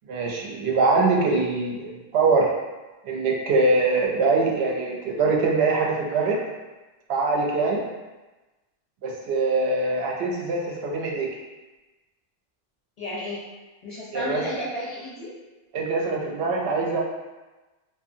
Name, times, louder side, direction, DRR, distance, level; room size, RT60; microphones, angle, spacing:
voice 1, 0.1-2.5 3.0-6.4 7.1-7.8 9.0-11.3 14.1-14.4 15.7-17.0, right 3 dB, 80° right, -1 dB, 0.8 m, -23 dB
voice 2, 13.0-13.5 13.8-15.4, left 1 dB, 45° left, -7 dB, 0.5 m, -33 dB
2.6 x 2.3 x 2.5 m, 1.2 s
omnidirectional pair, 1.1 m